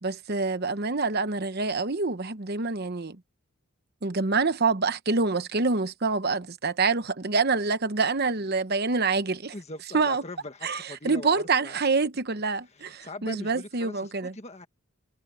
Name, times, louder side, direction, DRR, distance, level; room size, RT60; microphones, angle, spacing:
voice 1, 0.0-3.2 4.0-9.5 9.9-10.2 10.6-10.8 11.0-14.3, right 4 dB, 45° right, 1.0 m, -26 dB
voice 2, 8.2-8.6 9.5-11.8 12.6-14.7, left 2 dB, 30° left, 1.6 m, -41 dB
head